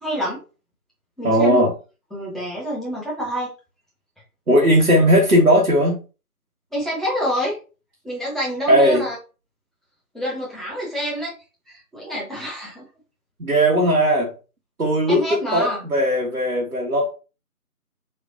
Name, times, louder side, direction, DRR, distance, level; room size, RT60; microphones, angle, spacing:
voice 1, 0.0-0.4 1.2-1.6 2.1-3.5 6.7-7.6 8.0-9.2 10.1-11.3 11.7-12.8 15.1-15.8, equal, ahead, -6 dB, 0.6 m, -27 dB
voice 2, 1.2-1.7 4.5-6.0 8.7-9.0 13.4-14.3 14.8-17.1, equal, 75° right, -3 dB, 1.3 m, -17 dB
3.8 x 3.2 x 2.5 m, 0.33 s
figure-of-eight pair, 165°, 45 cm